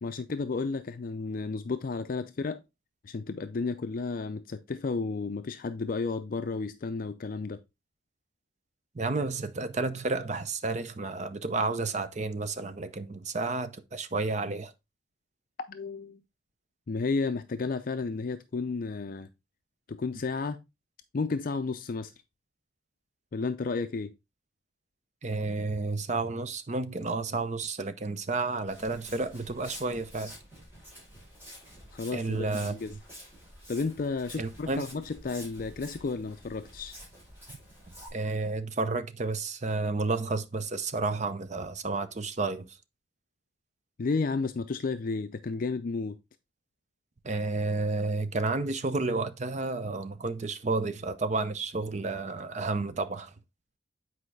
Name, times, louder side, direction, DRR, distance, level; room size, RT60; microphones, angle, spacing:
voice 1, 0.0-2.6 3.0-7.6 15.7-16.2 16.9-19.3 19.9-20.6 21.1-22.1 23.3-24.1 31.9-32.9 33.7-37.0 44.0-46.2, left 4 dB, 50° left, 0.4 m, -32 dB
voice 2, 8.9-14.7 25.2-30.3 32.1-32.7 34.4-34.8 37.5-37.6 38.1-42.8 47.2-53.3, right 3 dB, 40° right, 0.6 m, -31 dB
Walk footsteps, 28.7-38.1, equal, 10° right, 4.1 m, -49 dB
8.5 x 4.6 x 3.3 m
head